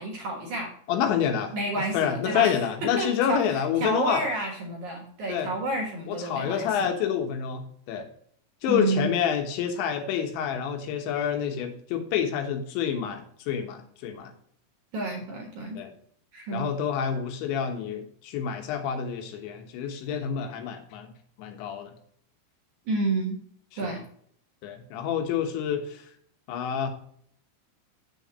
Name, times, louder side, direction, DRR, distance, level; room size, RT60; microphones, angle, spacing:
voice 1, 0.0-0.7 1.5-6.9 8.7-9.1 14.9-15.8 16.3-16.7 22.9-23.4 23.8-24.0, right 2 dB, 60° right, 1 dB, 2.3 m, -30 dB
voice 2, 0.9-1.5 1.9-4.2 5.3-5.5 6.1-8.1 8.6-14.3 15.8-15.9 16.5-21.1 21.4-21.9 23.8-23.9 24.6-26.1 26.5-26.9, left 8 dB, 90° left, 6 dB, 3.6 m, -28 dB
7.4 x 7.2 x 4.0 m, 0.64 s
omnidirectional pair, 5.1 m